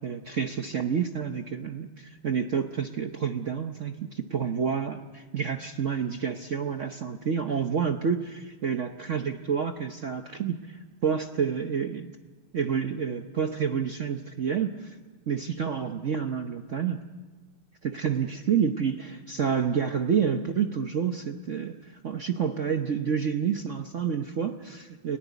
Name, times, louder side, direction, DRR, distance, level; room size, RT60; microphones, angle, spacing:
voice 1, 0.0-12.2 12.5-15.0 15.3-17.0 17.8-25.2, right 7 dB, 55° right, 6 dB, 0.8 m, -29 dB
30.0 x 18.5 x 8.2 m, 1.3 s
omnidirectional pair, 2.3 m